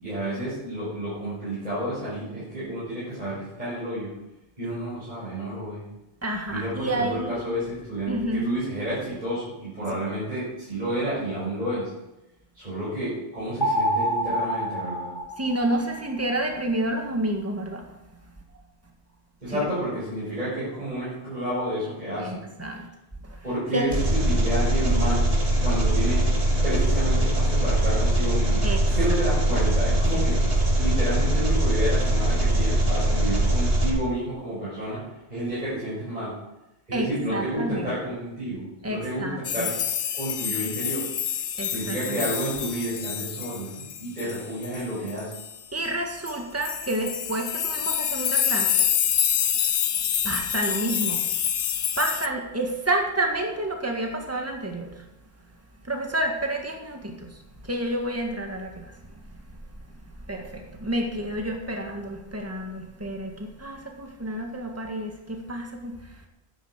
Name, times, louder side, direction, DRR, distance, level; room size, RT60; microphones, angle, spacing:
voice 1, 0.0-4.1 4.6-5.8 6.5-11.9 12.5-15.1 19.4-22.4 23.4-25.2 25.6-26.2 26.6-35.0 35.3-36.3 36.9-39.7 40.1-41.0 41.7-45.3, right 1 dB, 45° right, -11 dB, 7.1 m, -30 dB
voice 2, 6.2-7.4 8.1-8.5 15.4-17.8 19.5-19.7 22.2-22.9 23.2-23.4 23.7-23.9 28.6-28.8 30.1-30.3 36.9-38.0 38.8-39.7 41.6-42.2 45.7-48.9 50.2-51.3 52.0-55.1 55.8-59.0 60.3-66.3, right 1 dB, 15° right, 2 dB, 1.8 m, -29 dB
sound 1, 13.6-16.1, equal, 20° left, 2.5 m, -27 dB
Engine, 23.9-33.9, right 1 dB, 70° right, 2.7 m, -22 dB
sound 2, 39.4-45.6 46.3-46.4 46.6-52.3, left 9 dB, 70° left, 1.0 m, -27 dB
12.5 x 10.5 x 6.7 m, 0.95 s
omnidirectional pair, 1.0 m